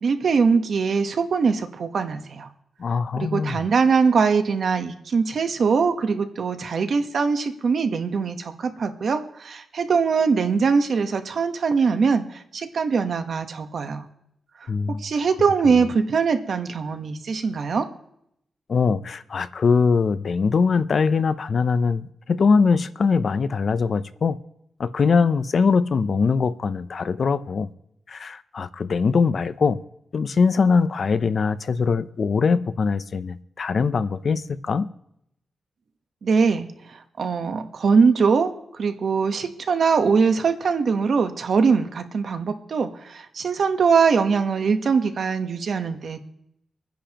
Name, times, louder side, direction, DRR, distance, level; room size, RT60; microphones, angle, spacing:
voice 1, 0.0-2.5 3.2-12.2 12.5-14.0 14.9-17.9 36.2-36.7 37.2-38.5 38.8-46.2, right 5 dB, 60° right, 1.1 m, -22 dB
voice 2, 2.8-3.6 14.7-15.0 15.7-15.9 18.7-24.4 24.8-27.7 28.1-29.8 30.1-34.9, left 5 dB, 50° left, 0.6 m, -22 dB
26.5 x 10.0 x 2.9 m
wide cardioid pair, 145°, 0 cm